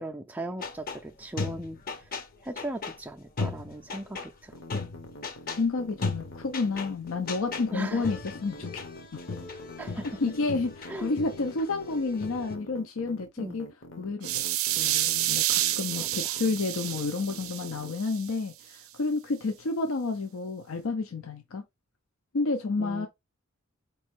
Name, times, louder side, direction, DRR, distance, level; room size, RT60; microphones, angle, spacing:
voice 1, 0.0-1.8 2.4-4.6 7.7-8.1 9.8-10.1 10.9-11.1 13.4-13.6 16.2-16.3 22.8-23.1, right 1 dB, 10° right, 0.4 m, -38 dB
sound 1, 0.6-1.0 1.4-3.0 3.4-4.3 4.6-5.6 6.0-6.9 7.3-12.6, left 4 dB, 45° left, 0.8 m, -36 dB
sound 2, 4.5-17.9, left 1 dB, 65° left, 1.1 m, -46 dB
voice 2, 5.6-8.8 10.2-13.7 14.0-21.6 22.3-23.1, left 3 dB, 80° left, 0.6 m, -30 dB
sound 3, 14.2-18.3, right 14 dB, 85° right, 0.4 m, -29 dB
4.4 x 3.1 x 3.1 m
head